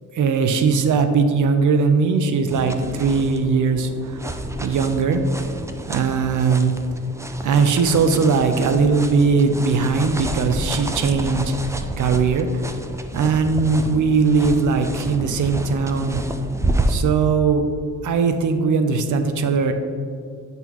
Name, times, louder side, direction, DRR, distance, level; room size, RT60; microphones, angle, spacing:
voice 1, 0.1-4.3 4.6-5.2 5.9-6.7 7.4-11.5 12.0-12.5 13.1-16.2 16.9-17.7 18.0-19.7, right 5 dB, 70° right, 8 dB, 0.6 m, -19 dB
sound 1, 2.5-16.9, right 1 dB, 10° right, 0.3 m, -30 dB
8.0 x 5.4 x 3.0 m, 2.3 s
wide cardioid pair, 120°, 32 cm